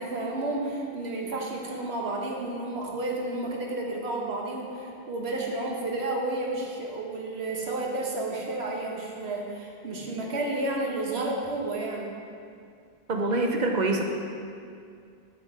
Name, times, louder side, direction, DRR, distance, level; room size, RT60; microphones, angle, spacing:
voice 1, 0.0-12.1, right 2 dB, 85° right, -1 dB, 1.4 m, -31 dB
voice 2, 13.1-14.0, right 2 dB, 50° right, 2 dB, 0.8 m, -25 dB
7.4 x 6.2 x 4.8 m, 2.3 s
omnidirectional pair, 1.0 m